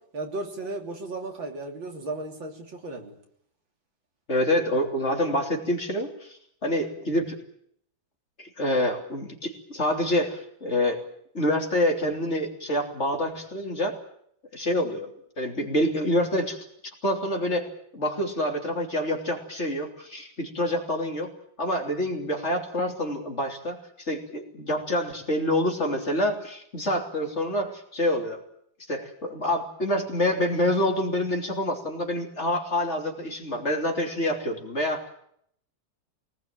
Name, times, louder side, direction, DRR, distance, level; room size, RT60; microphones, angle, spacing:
voice 1, 0.0-3.1, right 2 dB, 80° right, 2 dB, 3.9 m, -35 dB
voice 2, 4.3-7.4 8.4-11.0 11.3-14.0 14.5-15.1 15.4-16.6 17.0-17.7 17.9-21.3 21.6-28.4 28.9-35.0, left 1 dB, 35° left, 2 dB, 3.4 m, -27 dB
23.0 x 19.5 x 9.1 m, 0.70 s
omnidirectional pair, 2.1 m